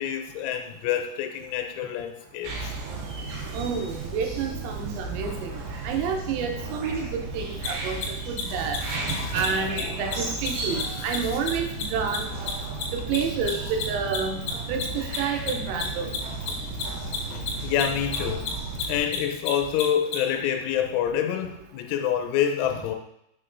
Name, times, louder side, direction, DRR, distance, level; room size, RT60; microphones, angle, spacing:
voice 1, 0.0-2.7 7.8-8.0 8.6-9.9 10.7-11.1 16.5-16.6 17.3-18.5 18.9-23.0, left 9 dB, 80° left, 5 dB, 3.0 m, -28 dB
sound 1, 2.4-19.0, right 3 dB, 70° right, 3.2 m, -34 dB
voice 2, 3.5-8.0 8.3-8.8 9.3-12.3 12.9-14.4 14.7-16.1, right 6 dB, 85° right, 3 dB, 3.5 m, -29 dB
Mechanisms, 7.6-7.7 7.9-8.1 8.3-8.4 8.7-8.8 9.0-9.1 9.4-9.5 9.7-9.8 10.1-12.8 13.1-20.2, left 10 dB, 55° left, 2.2 m, -31 dB
7.4 x 5.8 x 2.6 m, 0.81 s
omnidirectional pair, 5.8 m